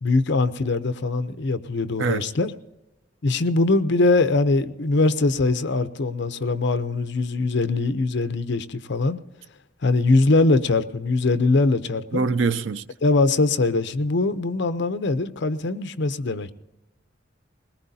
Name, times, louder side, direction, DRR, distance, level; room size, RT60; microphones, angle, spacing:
voice 1, 0.0-2.5 3.2-9.2 9.8-12.3 13.0-16.5, left 3 dB, 60° left, 0.7 m, -22 dB
voice 2, 12.1-12.8, right 4 dB, 70° right, 0.5 m, -23 dB
21.0 x 19.0 x 2.7 m
head